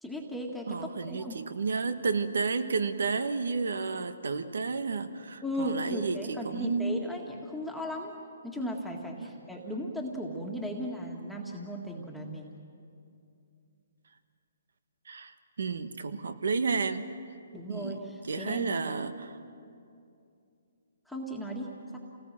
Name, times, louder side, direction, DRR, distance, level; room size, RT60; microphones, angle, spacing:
voice 1, 0.0-1.4 5.4-8.1 8.4-12.6 17.5-18.7 21.1-22.0, equal, ahead, -1 dB, 1.9 m, -36 dB
voice 2, 0.7-7.0 9.2-9.3 15.1-15.3 15.6-17.0 17.7-19.3, right 4 dB, 75° right, 10 dB, 1.3 m, -31 dB
28.5 x 19.0 x 7.6 m, 2.5 s
hypercardioid pair, 150°, 0 cm